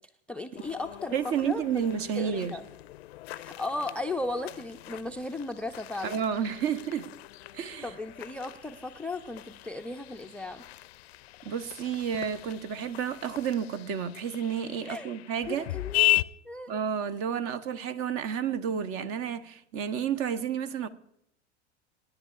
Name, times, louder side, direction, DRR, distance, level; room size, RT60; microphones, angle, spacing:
voice 1, 0.3-1.8 2.1-2.7 3.3-6.2 7.8-10.6 14.8-15.1 15.5-16.7, left 2 dB, 5° left, 0.4 m, -36 dB
sound 1, 0.6-16.2, left 17 dB, 60° left, 0.5 m, -36 dB
voice 2, 1.1-2.6 6.0-7.1 7.5-7.9 11.4-15.7 16.7-20.9, right 8 dB, 40° right, 0.9 m, -31 dB
26.5 x 10.5 x 2.4 m
figure-of-eight pair, 90°, 35 cm